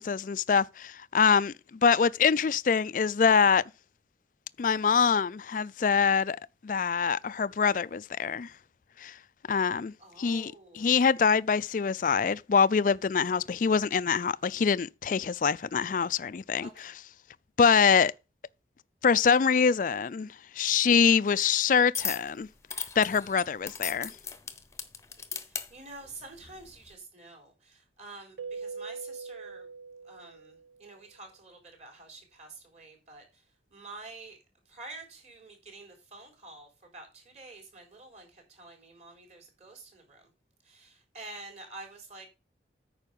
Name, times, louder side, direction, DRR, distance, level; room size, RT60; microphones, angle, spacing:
voice 1, 0.0-1.5 1.8-3.6 4.6-6.4 6.6-8.5 9.0-9.1 9.5-16.9 17.6-18.1 19.0-22.5 23.0-24.1, left 6 dB, 45° left, 0.4 m, -24 dB
voice 2, 10.0-10.9 16.6-16.9 25.5-29.7 30.0-33.4 33.7-34.4 34.7-40.3 40.6-42.3, right 3 dB, 40° right, 4.3 m, -48 dB
sound 1, 21.9-22.3 22.7-25.7 26.4-26.7, left 6 dB, 15° left, 0.8 m, -36 dB
Keyboard (musical), 28.4-30.9, right 4 dB, 75° right, 0.9 m, -42 dB
9.1 x 5.7 x 5.3 m
head